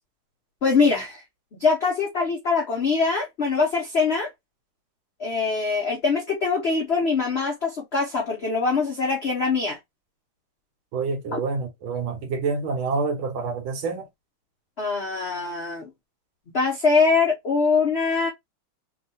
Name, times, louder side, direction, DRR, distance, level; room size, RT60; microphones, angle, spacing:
voice 1, 0.6-1.2 1.5-4.3 5.2-9.8 11.3-11.4 14.8-15.9 16.5-18.3, left 4 dB, 75° left, 0.6 m, -23 dB
voice 2, 10.9-14.1, right 4 dB, 75° right, 1.7 m, -27 dB
3.7 x 2.2 x 2.7 m
omnidirectional pair, 2.3 m